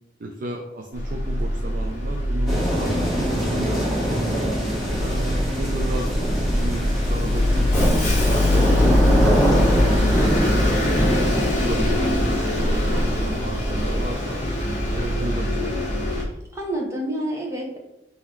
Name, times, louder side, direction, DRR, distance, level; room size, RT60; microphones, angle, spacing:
voice 1, 0.2-4.5 5.0-6.2 6.5-11.0 11.4-14.4 14.9-15.8, right 1 dB, 50° right, 0 dB, 0.4 m, -33 dB
Bus, 0.9-16.2, left 1 dB, 35° left, 1.2 m, -22 dB
sound 1, 2.5-11.5, right 1 dB, ahead, 1.5 m, -24 dB
voice 2, 16.2-17.8, right 1 dB, 15° right, -2 dB, 0.8 m, -29 dB
3.9 x 2.7 x 4.4 m, 0.93 s
head